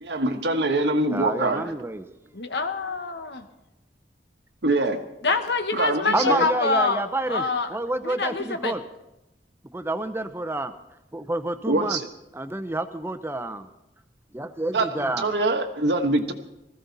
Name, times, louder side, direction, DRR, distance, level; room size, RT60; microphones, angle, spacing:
voice 1, 0.0-1.7 4.6-5.0 5.7-6.4 11.7-12.1 14.7-16.3, right 2 dB, 75° right, 6 dB, 1.4 m, -24 dB
voice 2, 1.1-2.1 6.1-8.8 9.6-10.7 11.1-12.0 12.3-13.7 14.3-15.3, right 2 dB, 15° right, 10 dB, 0.8 m, -29 dB
voice 3, 2.3-3.5 5.2-7.7 8.0-8.7, left 4 dB, 75° left, 7 dB, 1.4 m, -26 dB
20.0 x 15.0 x 4.1 m, 0.92 s
head